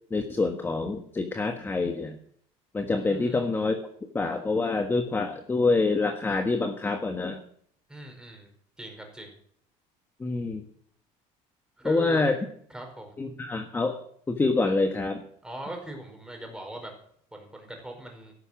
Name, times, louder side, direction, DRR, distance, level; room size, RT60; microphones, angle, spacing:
voice 1, 0.1-2.1 2.7-3.8 4.1-7.4 10.2-10.6 11.8-12.4 13.2-14.0 14.3-15.2, left 3 dB, 15° left, 5 dB, 1.4 m, -26 dB
voice 2, 3.0-3.4 7.9-8.5 8.8-9.3 11.8-12.2 12.7-13.1 15.4-16.9 17.3-18.3, right 1 dB, 5° right, 3 dB, 4.8 m, -40 dB
13.5 x 11.0 x 7.5 m, 0.65 s
cardioid pair, 140°, 14 cm